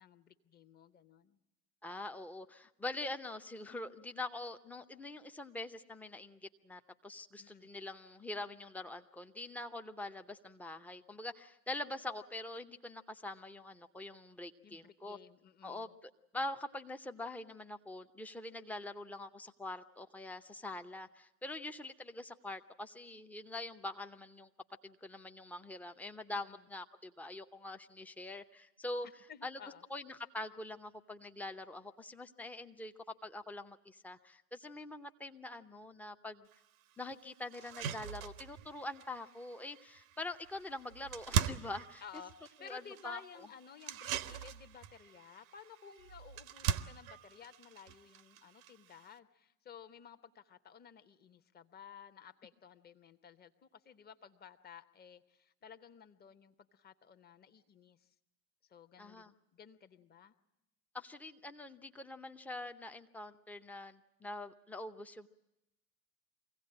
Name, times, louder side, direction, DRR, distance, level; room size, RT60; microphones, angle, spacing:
voice 1, 0.0-1.4 7.4-7.7 14.6-15.9 26.3-26.6 29.0-29.8 42.0-58.1 58.7-60.3, left 7 dB, 20° left, 9 dB, 1.1 m, -55 dB
voice 2, 1.8-15.2 15.6-24.5 24.8-29.1 29.4-29.6 29.9-32.9 33.2-36.5 37.0-42.0 42.6-43.5 59.0-59.3 60.9-65.3, left 2 dB, 5° left, 7 dB, 0.8 m, -44 dB
sound 1, 36.5-36.6 37.1-37.2 37.5-49.2, right 9 dB, 65° right, 1.0 m, -41 dB
24.0 x 16.5 x 8.8 m, 0.93 s
figure-of-eight pair, 85°, 45 cm